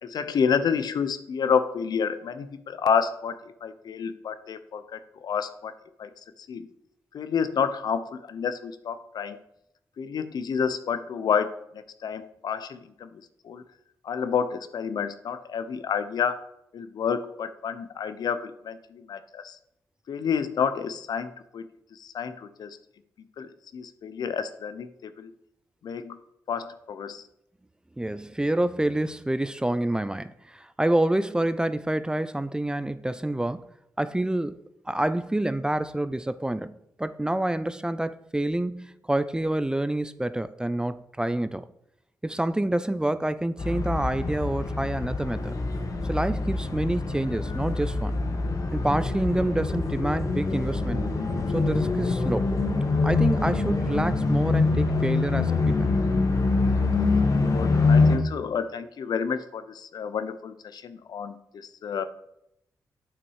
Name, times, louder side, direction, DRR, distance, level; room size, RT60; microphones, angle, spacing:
voice 1, 0.0-5.7 6.0-6.1 6.4-6.7 7.1-9.4 10.0-11.5 12.0-13.6 14.0-16.4 16.7-19.6 20.1-22.8 23.4-25.3 25.8-26.2 26.5-27.2 57.4-62.0, left 6 dB, 80° left, 0.7 m, -29 dB
voice 2, 28.0-33.7 34.0-34.6 34.9-41.7 42.2-45.5 46.0-48.2 48.7-51.1 51.5-52.6 53.0-55.9, right 1 dB, 10° right, 0.4 m, -27 dB
sound 1, 43.6-58.2, left 3 dB, 60° left, 1.3 m, -25 dB
8.1 x 5.9 x 4.7 m
cardioid pair, 80°, 7 cm